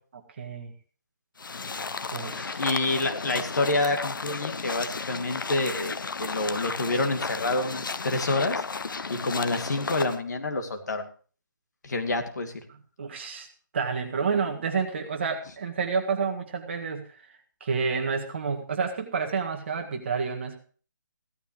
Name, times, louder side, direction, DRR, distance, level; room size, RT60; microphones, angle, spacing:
voice 1, 0.4-0.7 2.1-2.6 13.0-13.5 13.7-20.6, right 5 dB, 35° right, 3 dB, 1.9 m, -29 dB
sound 1, 1.4-10.2, left 4 dB, 70° left, 0.9 m, -34 dB
voice 2, 2.6-11.1 11.8-12.5, left 2 dB, 55° left, 4 dB, 2.4 m, -28 dB
16.5 x 13.0 x 3.1 m, 0.39 s
hypercardioid pair, 170°, 11 cm